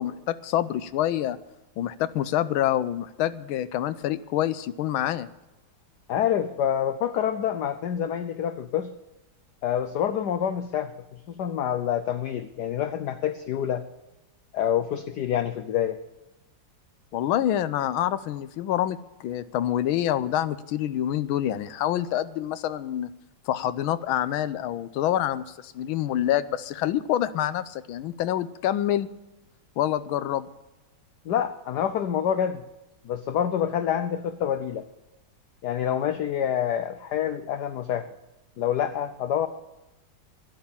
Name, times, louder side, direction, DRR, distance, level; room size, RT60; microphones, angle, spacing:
voice 1, 0.0-1.4 1.8-5.3 17.1-23.1 23.5-29.1 29.8-30.5, left 12 dB, 90° left, 15 dB, 1.5 m, -27 dB
voice 2, 6.1-8.9 9.6-13.8 14.5-16.0 31.2-32.6 33.0-34.9 35.6-38.1 38.6-39.5, left 9 dB, 65° left, 11 dB, 1.1 m, -27 dB
11.5 x 10.5 x 7.2 m, 0.98 s
omnidirectional pair, 2.2 m